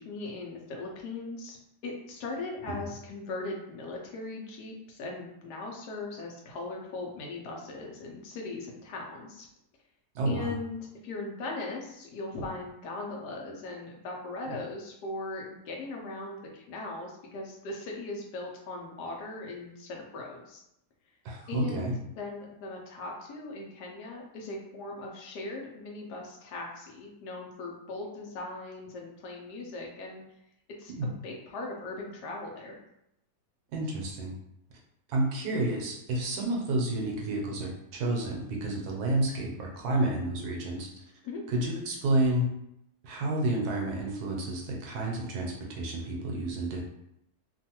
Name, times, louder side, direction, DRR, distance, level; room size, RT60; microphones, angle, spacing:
voice 1, 0.0-1.6 1.8-9.5 10.2-20.6 21.5-21.9 22.1-30.2 30.8-32.8 41.2-41.4, left 2 dB, 80° left, 0 dB, 1.2 m, -39 dB
voice 2, 10.1-10.5 14.5-14.6 21.2-22.0 30.9-31.1 33.7-34.3 35.1-40.9 41.5-42.5 43.0-46.8, right 1 dB, 75° right, -1 dB, 1.1 m, -30 dB
3.0 x 2.2 x 2.8 m, 0.81 s
omnidirectional pair, 1.8 m